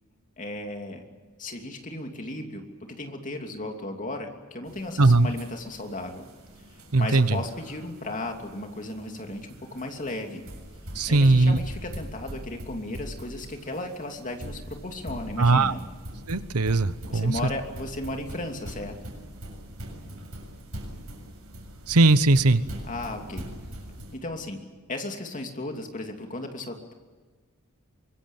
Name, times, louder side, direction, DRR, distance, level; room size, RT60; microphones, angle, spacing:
voice 1, 0.4-1.0 1.4-6.2 6.7-10.4 11.1-15.8 17.1-19.0 22.8-23.5 24.1-24.6 24.9-26.9, left 2 dB, 35° left, 4 dB, 2.9 m, -35 dB
sound 1, 4.7-24.2, equal, 70° right, 7.3 m, -42 dB
voice 2, 5.0-5.3 6.9-7.4 10.9-11.6 15.4-15.7 16.3-17.4 21.9-22.6, right 2 dB, 85° right, 14 dB, 1.0 m, -19 dB
25.0 x 22.0 x 7.3 m, 1.4 s
head